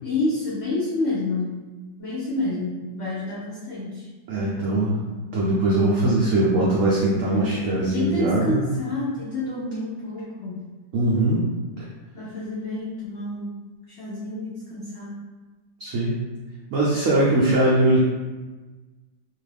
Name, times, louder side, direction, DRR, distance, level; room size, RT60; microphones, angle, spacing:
voice 1, 0.0-1.6 2.0-4.1 7.2-7.5 7.8-10.7 12.1-13.6 13.9-15.2, left 2 dB, 85° left, -7 dB, 0.6 m, -29 dB
voice 2, 4.3-5.0 5.3-8.7 10.9-11.5 11.8-11.9 15.8-16.2 16.7-18.0, right 1 dB, 85° right, -6 dB, 0.7 m, -21 dB
2.9 x 2.4 x 3.2 m, 1.3 s
omnidirectional pair, 2.0 m